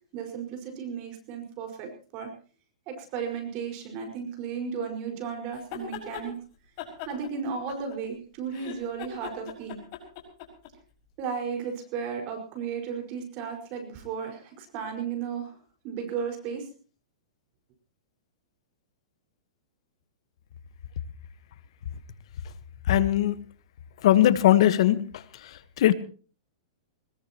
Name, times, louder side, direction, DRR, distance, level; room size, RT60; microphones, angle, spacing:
voice 1, 0.1-2.3 2.9-6.4 7.1-9.8 11.2-15.5 15.8-16.7, right 6 dB, 35° right, 4 dB, 5.2 m, -34 dB
sound 1, 5.5-6.3 6.8-8.2 8.5-10.7, left 10 dB, 40° left, 5.4 m, -40 dB
voice 2, 22.9-23.4 24.0-25.0 25.8-25.9, left 12 dB, 60° left, 14 dB, 1.3 m, -19 dB
22.0 x 21.0 x 3.0 m, 0.38 s
hypercardioid pair, 155°, 3 cm